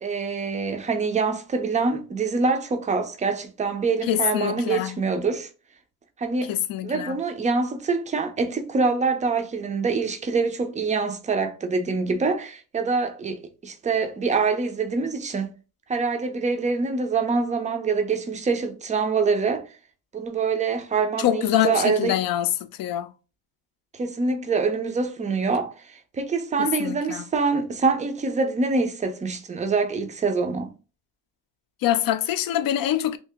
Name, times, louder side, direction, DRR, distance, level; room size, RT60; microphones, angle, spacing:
voice 1, 0.0-5.5 6.2-6.6 6.8-15.5 15.9-19.7 20.1-22.1 23.9-30.7, right 4 dB, 20° right, 0.4 m, -25 dB
voice 2, 4.1-5.0 6.5-7.2 21.2-22.5 22.8-23.1 26.6-27.2 31.8-33.2, left 11 dB, 60° left, 0.5 m, -24 dB
2.8 x 2.8 x 3.4 m
cardioid pair, 140°, 39 cm